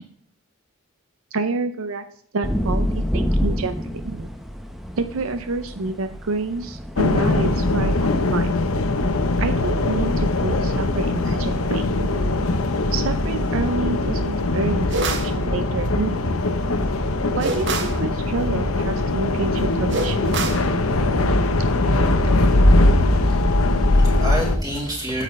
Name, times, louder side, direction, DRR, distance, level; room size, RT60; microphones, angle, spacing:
voice 1, 1.3-2.0 2.3-4.3 5.0-8.5 9.4-12.1 12.9-16.4 17.3-20.5 22.2-22.3, right 3 dB, 80° right, 9 dB, 0.6 m, -28 dB
sound 1, 2.4-8.5, equal, ahead, 0.7 m, -28 dB
sound 2, 7.0-24.6, left 2 dB, 85° left, 0.9 m, -20 dB
sound 3, 14.9-15.4 17.4-18.0 19.9-20.7, right 3 dB, 55° right, 1.0 m, -26 dB
voice 2, 23.3-25.2, equal, 15° right, -5 dB, 3.4 m, -29 dB
9.2 x 7.6 x 3.2 m, 0.63 s
head